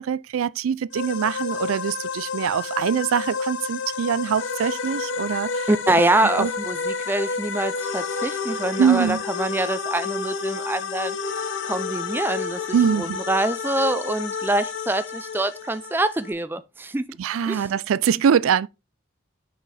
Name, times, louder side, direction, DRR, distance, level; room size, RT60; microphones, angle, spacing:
voice 1, 0.0-5.7 6.4-6.5 8.8-9.2 12.7-13.2 17.2-18.7, right 7 dB, 85° right, 0.4 m, -23 dB
sound 1, 0.9-16.3, left 5 dB, 65° left, 0.8 m, -30 dB
voice 2, 5.7-11.2 11.6-12.6 13.0-17.1 17.5-17.7, right 2 dB, 10° right, 0.4 m, -25 dB
6.3 x 5.6 x 3.3 m
head